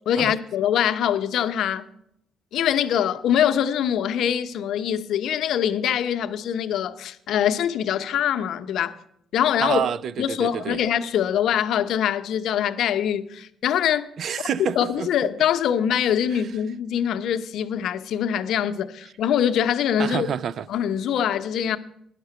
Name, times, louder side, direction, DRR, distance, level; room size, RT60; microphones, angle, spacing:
voice 1, 0.1-1.9 2.5-8.9 9.3-9.8 10.2-14.1 14.8-20.3 20.7-21.8, left 9 dB, 75° left, 0.7 m, -23 dB
voice 2, 9.6-10.8 14.2-15.1 20.0-20.6, right 8 dB, 65° right, 0.4 m, -28 dB
10.0 x 6.6 x 8.0 m
cardioid pair, 90°, 0 cm